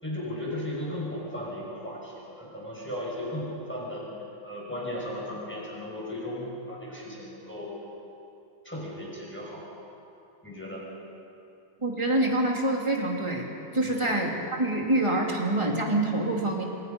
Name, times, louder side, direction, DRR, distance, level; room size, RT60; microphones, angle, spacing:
voice 1, 0.0-4.1 4.4-7.8 8.6-9.7 10.4-10.9 13.9-14.1, left 1 dB, 5° left, -4 dB, 6.2 m, -36 dB
voice 2, 11.8-13.5 13.7-16.6, right 1 dB, 15° right, -1 dB, 3.2 m, -26 dB
28.5 x 26.5 x 5.5 m, 2.7 s
omnidirectional pair, 1.9 m